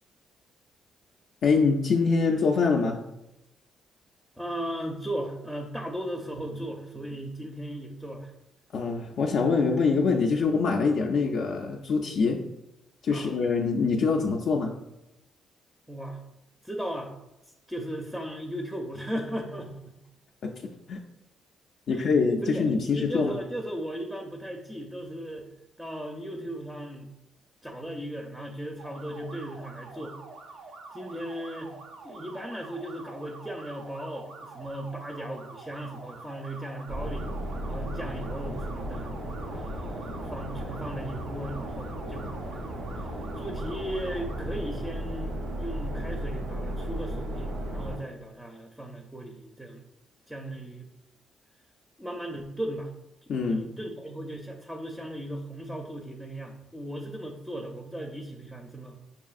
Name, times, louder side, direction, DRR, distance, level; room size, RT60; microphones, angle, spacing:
voice 1, 1.4-3.0 8.7-12.4 13.0-14.7 20.4-20.5 20.9-21.0 21.9-23.3 53.3-53.6, left 4 dB, 65° left, 1 dB, 0.3 m, -24 dB
voice 2, 4.4-8.3 13.1-13.4 15.9-16.2 16.6-17.1 17.7-20.0 21.9-22.1 22.4-25.5 25.8-27.1 27.6-30.2 30.9-37.3 37.6-39.1 39.5-42.7 42.9-49.8 50.3-50.9 52.0-52.9 53.2-59.0, right 1 dB, 5° right, 2 dB, 0.4 m, -37 dB
sound 1, 28.8-44.4, right 3 dB, 70° right, 0.4 m, -46 dB
sound 2, 36.9-48.0, right 1 dB, 85° right, 0.8 m, -35 dB
5.4 x 2.5 x 2.4 m, 0.90 s
cardioid pair, 90°, 0 cm